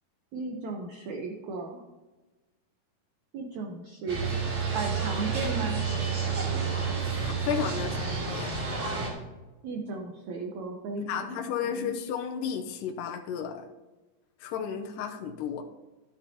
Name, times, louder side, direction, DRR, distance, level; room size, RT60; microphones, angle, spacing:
voice 1, 0.3-1.8 3.3-4.2 4.7-5.8 9.6-11.9, right 4 dB, 85° right, 2 dB, 1.6 m, -35 dB
sound 1, 4.1-9.1, right 5 dB, 45° right, 3.6 m, -30 dB
voice 2, 7.2-8.5 11.0-13.7 14.4-15.6, left 7 dB, 80° left, 3 dB, 2.0 m, -33 dB
12.5 x 9.7 x 2.8 m, 1.1 s
omnidirectional pair, 4.6 m